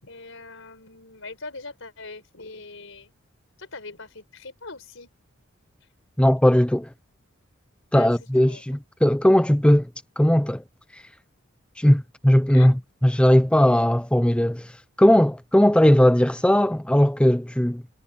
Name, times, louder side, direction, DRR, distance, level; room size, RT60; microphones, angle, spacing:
voice 1, 0.0-3.1 3.6-5.1 7.9-8.6 12.5-12.8, left 3 dB, 70° left, 5.4 m, -41 dB
voice 2, 6.2-6.9 7.9-9.9 10.2-10.6 10.9-11.0 11.8-14.7 15.0-17.8, equal, 5° left, 0.5 m, -18 dB
head